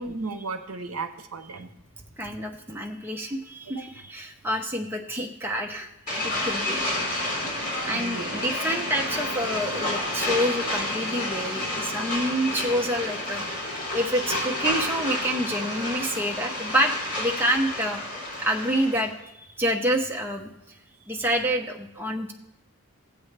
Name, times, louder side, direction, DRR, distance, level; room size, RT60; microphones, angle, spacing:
voice 1, 0.0-1.7 6.7-6.8 7.9-8.5, right 3 dB, 70° right, 8 dB, 0.8 m, -35 dB
voice 2, 2.2-5.9 6.2-6.8 7.8-18.0 18.4-19.3 19.6-20.5 21.1-22.3, equal, 10° right, 1 dB, 0.7 m, -27 dB
sound 1, 6.1-19.1, left 1 dB, 35° left, 3.1 m, -30 dB
16.0 x 8.3 x 3.3 m, 0.87 s
head